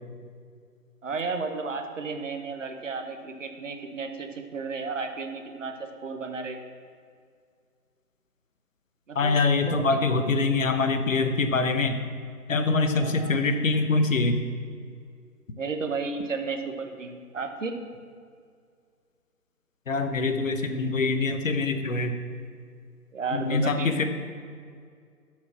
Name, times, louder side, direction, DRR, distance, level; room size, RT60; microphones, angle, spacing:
voice 1, 1.0-6.6 9.1-10.0 13.0-13.4 15.6-17.7 23.1-24.0, right 4 dB, 50° right, 6 dB, 1.1 m, -33 dB
voice 2, 9.2-12.0 12.5-14.4 19.9-22.2 23.3-24.0, left 3 dB, 55° left, 8 dB, 0.9 m, -24 dB
6.7 x 6.5 x 7.0 m, 2.1 s
figure-of-eight pair, 155°, 47 cm